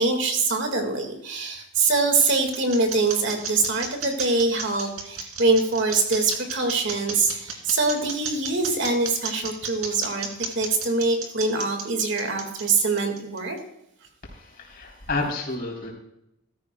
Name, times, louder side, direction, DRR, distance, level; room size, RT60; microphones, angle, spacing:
voice 1, 0.0-10.3 10.6-13.6, right 3 dB, 55° right, 5 dB, 1.9 m, -24 dB
sound 1, 1.6-13.6, right 5 dB, 80° right, 2.6 m, -33 dB
voice 2, 14.2-15.9, left 3 dB, 40° left, -1 dB, 3.5 m, -30 dB
15.5 x 14.0 x 2.3 m, 0.80 s
head